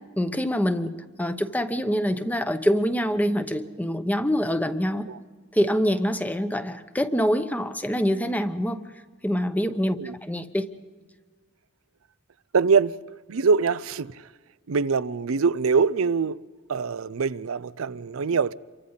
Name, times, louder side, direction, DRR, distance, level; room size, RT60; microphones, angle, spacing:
voice 1, 0.2-5.1 5.5-8.8 9.2-10.7, equal, 10° left, 0.9 m, -25 dB
voice 2, 12.5-13.0 13.3-14.2 14.7-16.4 16.7-18.5, right 5 dB, 90° right, 0.5 m, -23 dB
28.0 x 24.0 x 4.0 m
head